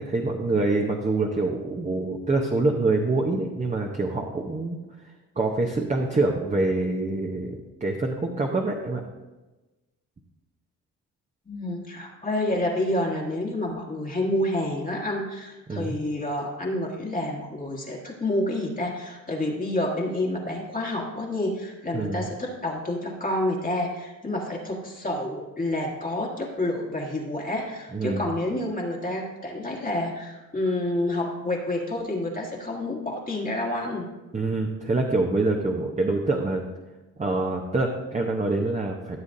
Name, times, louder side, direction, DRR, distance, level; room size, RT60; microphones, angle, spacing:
voice 1, 0.0-4.8 5.4-9.1 15.7-15.9 21.9-22.3 27.9-28.2 34.3-36.6 37.2-39.2, right 2 dB, 20° right, 1 dB, 0.8 m, -25 dB
voice 2, 11.5-34.1, left 1 dB, 25° left, -2 dB, 1.4 m, -29 dB
14.0 x 6.9 x 2.6 m, 1.1 s
cardioid pair, 95°, 35 cm